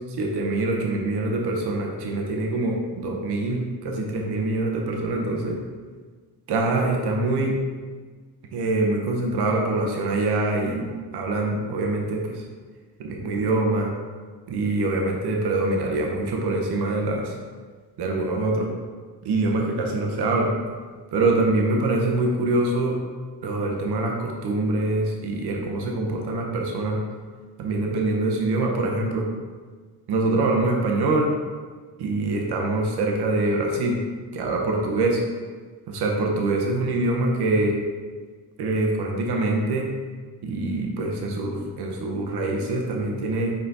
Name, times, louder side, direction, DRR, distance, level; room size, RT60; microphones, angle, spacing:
voice 1, 0.2-5.6 6.5-7.6 8.5-12.4 13.0-13.9 14.5-17.3 18.0-18.7 19.2-20.5 21.1-23.0 23.4-27.0 27.6-29.3 30.1-31.3 32.0-34.0 34.3-35.2 35.9-37.7 38.6-39.9 40.4-43.5, right 2 dB, 85° right, 0 dB, 1.0 m, -24 dB
5.6 x 4.2 x 4.1 m, 1.5 s
cardioid pair, 85°, 38 cm